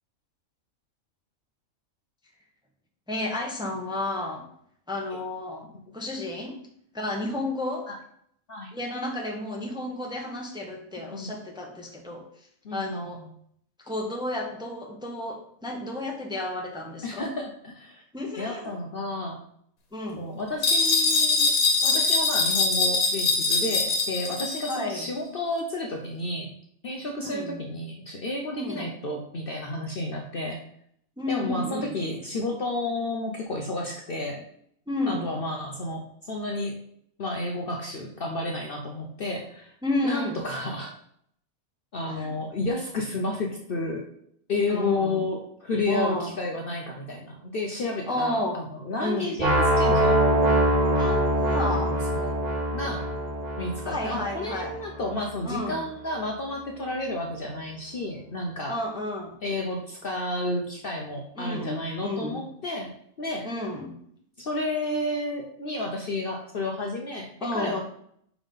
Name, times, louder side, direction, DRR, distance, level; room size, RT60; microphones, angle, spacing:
voice 1, 3.1-4.4 4.9-5.7 5.9-6.6 6.9-7.9 8.7-12.2 12.7-13.2 13.8-17.3 18.1-18.7 19.9-20.2 24.7-25.1 27.2-27.6 28.5-28.9 31.2-31.9 34.9-35.3 39.8-40.4 42.2-42.3 44.7-45.2 45.9-46.3 48.1-48.6 49.0-49.3 51.0-52.0 53.8-54.8 55.5-55.8 58.7-59.3 61.4-62.4 63.4-63.9 67.4-67.8, left 1 dB, 5° right, 0 dB, 0.7 m, -31 dB
voice 2, 12.6-13.3 17.0-18.0 18.3-19.4 20.2-21.5 21.8-26.5 26.8-30.6 31.3-34.4 35.1-36.8 37.2-39.7 40.0-40.9 41.9-44.1 44.5-50.2 52.1-52.4 52.7-53.1 53.6-58.8 59.4-62.9 63.2-63.5 64.4-67.8, left 2 dB, 50° left, 2 dB, 0.8 m, -31 dB
sound 1, 20.6-24.8, left 3 dB, 90° left, 1.5 m, -23 dB
sound 2, 49.4-55.3, right 1 dB, 35° right, 1.1 m, -24 dB
5.5 x 3.6 x 5.4 m, 0.69 s
omnidirectional pair, 1.4 m